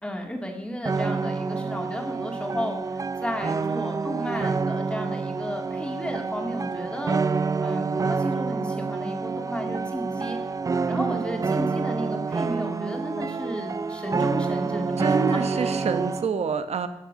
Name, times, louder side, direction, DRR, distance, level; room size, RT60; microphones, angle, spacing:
voice 1, 0.0-7.2 7.6-10.4 10.9-15.8, equal, 10° left, 3 dB, 2.1 m, -33 dB
sound 1, 0.9-16.3, right 4 dB, 30° right, 0.4 m, -27 dB
voice 2, 10.9-11.2 15.0-16.9, right 6 dB, 65° right, 10 dB, 1.0 m, -28 dB
18.5 x 6.5 x 6.3 m, 0.90 s
wide cardioid pair, 140°, 12 cm